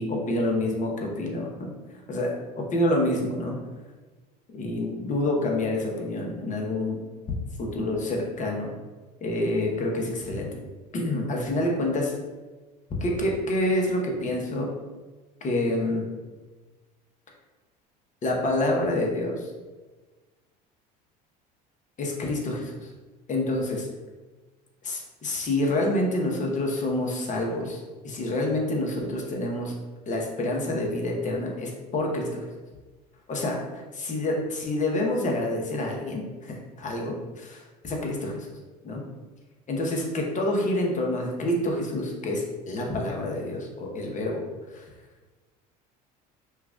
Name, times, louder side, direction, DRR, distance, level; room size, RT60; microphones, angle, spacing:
voice 1, 0.0-1.7 2.1-3.6 4.5-7.0 7.6-8.7 9.2-10.5 10.9-12.1 13.0-14.7 15.4-16.0 18.2-19.5 22.0-22.9 23.3-23.9 24.8-29.7 30.1-32.4 33.3-38.5 38.8-39.0 39.7-44.4 44.7-44.8, left 1 dB, 35° left, 0 dB, 1.0 m, -27 dB
5.6 x 2.4 x 2.3 m, 1.3 s
supercardioid pair, 90°, 21 cm